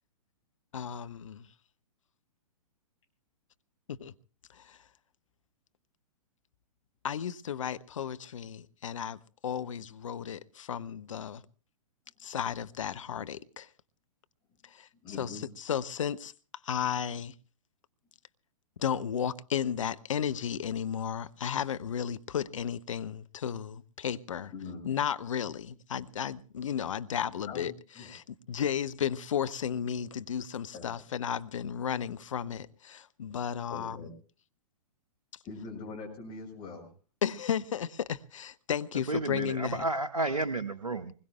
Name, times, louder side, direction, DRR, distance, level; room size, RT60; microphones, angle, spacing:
voice 1, 0.7-1.5 3.9-4.1 4.5-4.8 7.0-11.4 12.2-13.7 14.7-14.9 15.2-16.3 16.6-17.3 18.8-24.5 24.8-27.7 28.0-34.0 37.2-39.9, left 8 dB, 55° left, 0.7 m, -34 dB
voice 2, 15.0-15.5 24.5-24.8 27.5-28.1 30.7-30.8 33.7-34.1 35.4-36.9, left 4 dB, 25° left, 6.7 m, -42 dB
voice 3, 39.1-41.1, right 2 dB, 85° right, 0.9 m, -31 dB
24.5 x 21.0 x 2.2 m
figure-of-eight pair, 115°, 19 cm